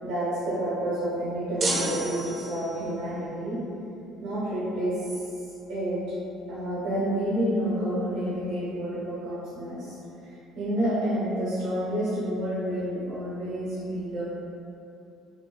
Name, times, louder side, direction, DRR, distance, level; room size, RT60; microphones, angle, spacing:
voice 1, 0.0-3.6 4.2-5.2 5.7-6.0 6.5-10.0 10.2-14.2, right 1 dB, 75° right, -11 dB, 1.1 m, -29 dB
sound 1, 1.6-2.9, right 2 dB, 50° right, 0.7 m, -30 dB
5.5 x 2.3 x 2.2 m, 2.8 s
supercardioid pair, 70°, 0 cm